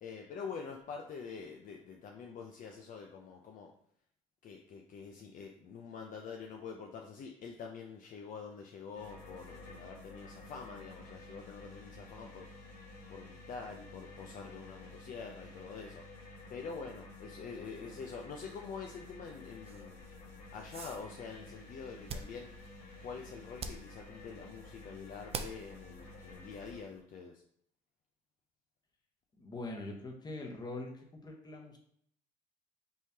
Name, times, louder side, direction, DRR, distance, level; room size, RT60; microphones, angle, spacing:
voice 1, 0.0-3.7 4.4-12.7 13.1-16.1 16.5-20.0 20.5-22.5 23.0-27.4, left 5 dB, 50° left, 1 dB, 0.6 m, -46 dB
sound 1, 8.9-26.8, left 2 dB, 90° left, 1.5 m, -52 dB
sound 2, 19.6-27.0, right 4 dB, 35° right, 0.4 m, -48 dB
voice 2, 29.4-31.8, left 2 dB, 25° left, 0 dB, 1.1 m, -43 dB
5.4 x 3.1 x 2.8 m, 0.66 s
cardioid pair, 110°, 17 cm